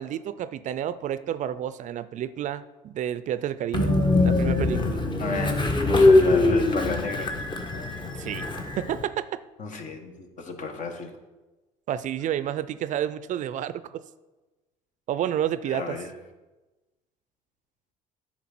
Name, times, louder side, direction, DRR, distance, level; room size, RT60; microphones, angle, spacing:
voice 1, 0.0-3.9 4.2-5.0 8.2-8.5 8.7-9.4 11.9-14.0 15.1-16.0, right 10 dB, 50° right, 15 dB, 0.4 m, -30 dB
Train, 3.7-9.0, left 2 dB, 30° left, 1.4 m, -22 dB
voice 2, 5.2-7.4 9.6-11.1 15.7-16.1, left 4 dB, 55° left, 6 dB, 1.3 m, -32 dB
9.5 x 4.4 x 6.0 m, 1.1 s
hypercardioid pair, 70°, 16 cm